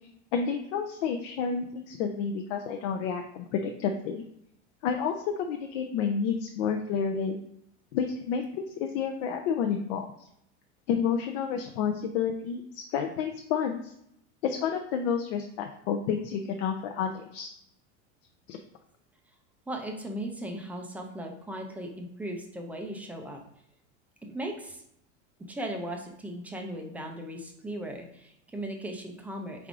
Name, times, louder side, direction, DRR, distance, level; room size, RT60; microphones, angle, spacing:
voice 1, 0.3-4.2 4.8-7.4 7.9-10.1 10.9-13.9 14.4-17.5 18.5-18.6, left 6 dB, 65° left, 4 dB, 0.6 m, -30 dB
voice 2, 19.7-23.4 24.2-24.8 25.5-29.7, right 1 dB, 5° right, 2 dB, 0.3 m, -37 dB
4.7 x 3.5 x 2.4 m, 0.74 s
supercardioid pair, 125°, 36 cm